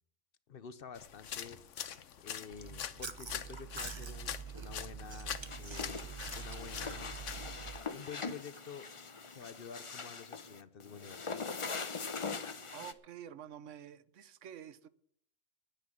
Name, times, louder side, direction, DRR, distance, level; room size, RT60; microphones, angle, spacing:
voice 1, 0.5-1.6 2.2-7.2 7.9-8.9 9.3-11.5, left 7 dB, 55° left, 0.9 m, -49 dB
sound 1, 0.9-7.8, left 9 dB, 80° left, 1.2 m, -44 dB
Chewing mastication, 2.5-7.8, right 6 dB, 25° right, 0.9 m, -45 dB
sound 2, 5.1-12.9, left 4 dB, 30° left, 0.7 m, -42 dB
voice 2, 12.7-14.9, right 9 dB, 80° right, 1.1 m, -49 dB
10.0 x 10.0 x 8.6 m
omnidirectional pair, 1.2 m